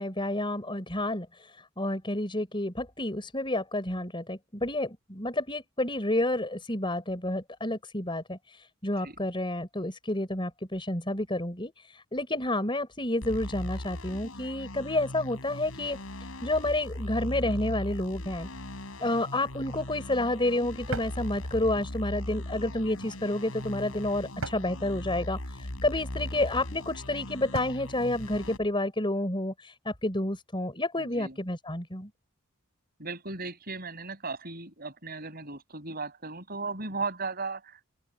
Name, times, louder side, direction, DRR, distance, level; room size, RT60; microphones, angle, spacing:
voice 1, 0.0-16.0 16.4-18.5 19.0-32.1, left 1 dB, 25° left, 5.6 m, -30 dB
sound 1, 13.2-28.6, left 1 dB, 80° left, 3.6 m, -39 dB
sound 2, 19.6-19.9 20.9-21.2 22.8-23.2 24.4-24.8 26.2-26.6 27.5-27.9, right 2 dB, 85° right, 6.8 m, -39 dB
voice 2, 31.0-31.4 33.0-37.9, right 3 dB, 45° right, 6.5 m, -36 dB
open air
head